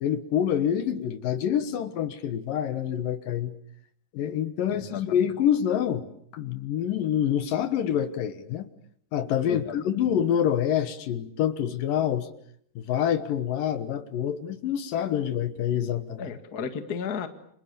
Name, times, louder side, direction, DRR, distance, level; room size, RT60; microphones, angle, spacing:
voice 1, 0.0-3.5 4.1-6.1 6.3-8.7 9.1-12.3 12.8-16.3, left 9 dB, 65° left, 12 dB, 2.7 m, -26 dB
voice 2, 9.5-10.0 16.2-17.3, left 6 dB, 35° left, 9 dB, 1.6 m, -34 dB
30.0 x 26.5 x 7.0 m, 0.66 s
omnidirectional pair, 4.5 m